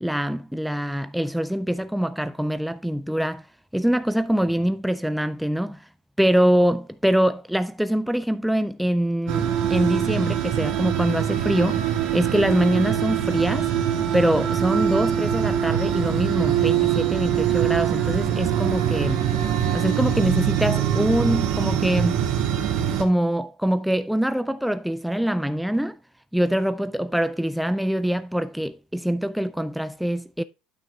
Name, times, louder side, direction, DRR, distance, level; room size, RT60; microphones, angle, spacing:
voice 1, 0.0-3.5 3.7-5.9 6.2-13.7 14.1-19.3 19.7-22.2 23.0-26.0 26.3-30.4, equal, ahead, 0.3 m, -24 dB
sound 1, 9.3-23.0, right 9 dB, 65° right, 1.9 m, -23 dB
8.9 x 8.9 x 2.3 m
supercardioid pair, 95°, 0 cm